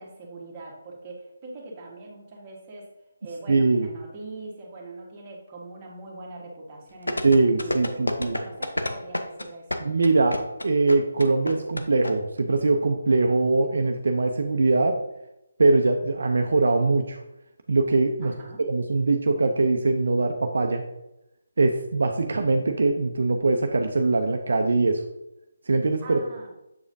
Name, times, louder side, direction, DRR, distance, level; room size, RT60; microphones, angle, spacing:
voice 1, 0.0-2.9 3.2-9.8 18.2-18.6 26.0-26.5, right 2 dB, 25° right, -4 dB, 1.5 m, -42 dB
voice 2, 3.5-3.9 7.2-8.4 9.8-10.4 10.6-15.0 15.6-17.2 17.7-18.3 18.7-20.8 21.6-25.0 25.7-26.2, right 3 dB, 65° right, 4 dB, 0.5 m, -22 dB
sound 1, 7.1-12.1 12.4-12.5, left 1 dB, 85° left, 0.6 m, -28 dB
7.4 x 4.9 x 2.6 m, 0.90 s
figure-of-eight pair, 150°, 0 cm